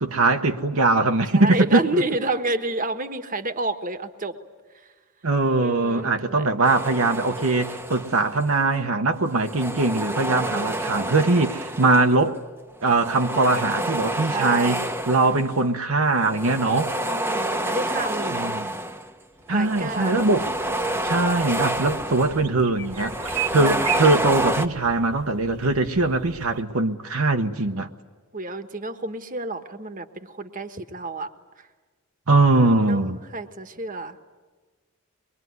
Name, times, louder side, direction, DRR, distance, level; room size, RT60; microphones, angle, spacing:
voice 1, 0.0-2.0 5.2-12.4 12.8-14.8 15.1-16.9 18.3-18.7 19.5-20.5 21.0-23.1 23.5-27.9 32.3-33.2, right 3 dB, 65° right, 1.1 m, -21 dB
voice 2, 1.3-4.3 5.6-6.5 10.2-11.1 14.2-15.0 17.0-18.5 19.5-20.1 23.5-24.0 28.3-31.3 31.6-31.7 32.8-33.0 33.3-34.2, right 2 dB, 40° right, 1.3 m, -30 dB
sound 1, 6.6-8.5 9.3-12.3 12.8-15.6 16.1-19.1 19.5-22.5 22.8-24.7, right 1 dB, 10° right, 0.9 m, -29 dB
sound 2, 19.4-26.6, right 7 dB, 85° right, 2.8 m, -36 dB
24.0 x 22.5 x 9.5 m
head